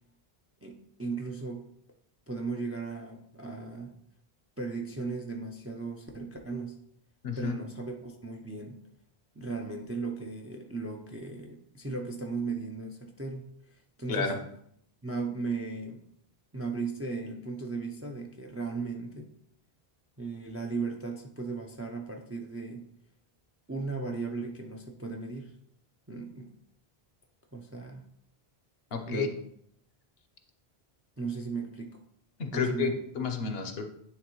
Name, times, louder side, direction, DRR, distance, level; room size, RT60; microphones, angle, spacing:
voice 1, 0.6-1.7 2.3-3.9 4.6-6.8 7.4-8.8 9.3-14.3 15.0-16.0 16.5-19.3 20.2-22.9 23.7-25.5 26.1-26.5 27.5-28.0 29.1-29.4 31.2-32.0 32.5-33.0, right 4 dB, 20° right, 2 dB, 0.4 m, -36 dB
voice 2, 7.2-7.5 14.1-14.4 28.9-29.3 32.4-33.9, left 5 dB, 75° left, 5 dB, 1.0 m, -31 dB
9.4 x 3.4 x 3.0 m, 0.70 s
omnidirectional pair, 1.0 m